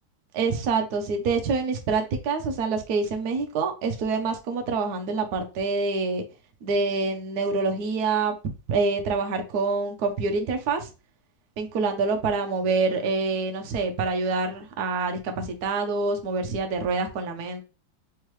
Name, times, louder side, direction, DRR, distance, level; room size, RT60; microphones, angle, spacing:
voice 1, 0.3-6.2 6.6-8.3 8.7-10.9 11.6-17.6, right 4 dB, 65° right, 5 dB, 1.1 m, -26 dB
3.6 x 3.3 x 3.0 m, 0.31 s
omnidirectional pair, 2.1 m